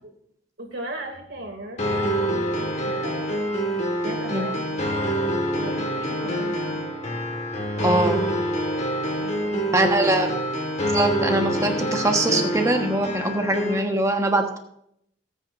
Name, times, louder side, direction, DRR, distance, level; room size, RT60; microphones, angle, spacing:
voice 1, 0.6-3.3 4.0-7.1 8.6-10.0 10.3-10.4, right 1 dB, 70° right, 3 dB, 2.5 m, -38 dB
sound 1, 1.8-13.8, equal, 35° left, 1.7 m, -26 dB
voice 2, 7.8-8.2 9.7-10.3 10.9-14.6, right 2 dB, 15° right, 3 dB, 1.3 m, -22 dB
19.0 x 9.0 x 2.6 m, 0.70 s
head